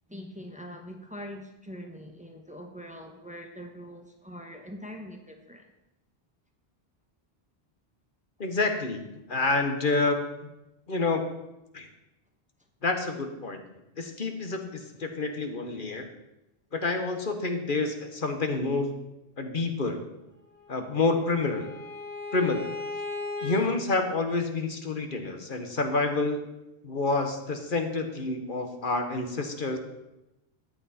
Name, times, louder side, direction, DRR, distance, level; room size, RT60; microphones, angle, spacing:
voice 1, 0.1-5.7, equal, 5° right, 3 dB, 1.2 m, -43 dB
voice 2, 8.4-10.5 10.9-11.3 11.7-11.9 12.8-13.6 14.0-16.0 16.7-19.0 19.4-20.0 20.7-21.7 22.3-22.7 23.4-26.4 26.8-29.8, left 3 dB, 55° left, 6 dB, 1.3 m, -28 dB
Bowed string instrument, 20.6-23.7, left 3 dB, 25° left, 3.6 m, -37 dB
14.0 x 9.9 x 4.2 m, 0.93 s
omnidirectional pair, 1.0 m